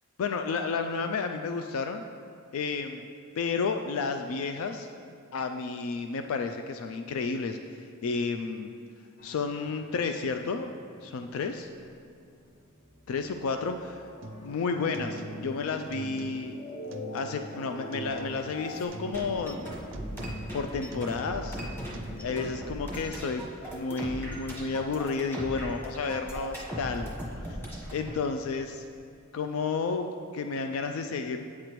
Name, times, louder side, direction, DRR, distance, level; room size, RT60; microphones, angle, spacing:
voice 1, 0.2-2.0 2.5-3.0 3.4-4.9 5.3-8.7 9.2-10.7 11.0-11.7 13.1-14.1 14.4-16.6 17.1-19.7 20.5-21.6 22.2-23.4 23.7-27.1 27.5-27.6 27.9-28.9 29.3-31.4, left 4 dB, 80° left, 6 dB, 0.3 m, -31 dB
sound 1, 9.2-11.9 12.2-18.8, left 1 dB, 45° left, 0.7 m, -44 dB
sound 2, 14.2-14.6 14.9-15.6 15.9-16.6 16.9-17.6 17.9-18.6 18.9-19.6 19.9-20.6 20.9-21.6 21.9-22.2, right 1 dB, 65° right, 0.4 m, -43 dB
sound 3, 19.1-28.1, equal, 10° left, 1.1 m, -38 dB
8.3 x 6.6 x 3.0 m, 2.5 s
head